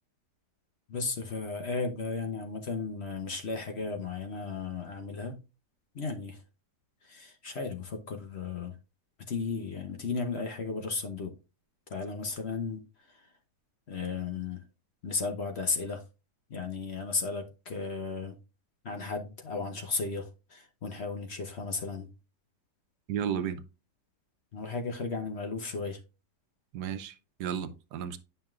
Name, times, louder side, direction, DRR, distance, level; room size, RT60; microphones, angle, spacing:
voice 1, 0.9-5.4 5.9-6.4 7.0-8.7 9.3-11.3 11.9-12.8 13.1-13.2 13.9-14.6 15.0-16.0 16.5-18.4 18.8-22.1 24.5-26.0, left 4 dB, 50° left, 0.9 m, -35 dB
voice 2, 23.1-23.6 26.7-28.2, right 8 dB, 85° right, 1.3 m, -33 dB
9.2 x 5.6 x 2.4 m
omnidirectional pair, 1.7 m